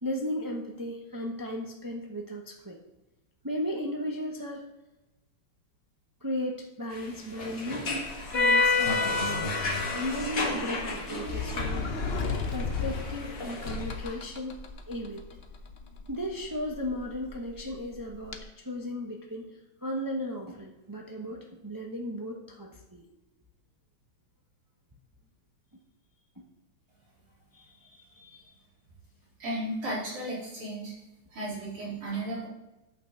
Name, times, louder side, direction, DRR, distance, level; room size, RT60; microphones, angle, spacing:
voice 1, 0.0-2.8 3.4-4.6 6.2-9.5 9.9-11.9 12.5-14.6 14.9-15.2 16.1-19.4 19.8-23.1 27.5-28.5, equal, 30° right, 0 dB, 0.3 m, -35 dB
sound 1, 6.9-14.1, left 3 dB, 40° left, 1.9 m, -30 dB
Sliding door, 7.8-18.4, left 4 dB, 85° left, 0.5 m, -37 dB
voice 2, 29.4-30.9 31.3-32.5, right 1 dB, 75° right, -7 dB, 4.7 m, -34 dB
9.5 x 5.8 x 6.7 m, 0.97 s
omnidirectional pair, 2.4 m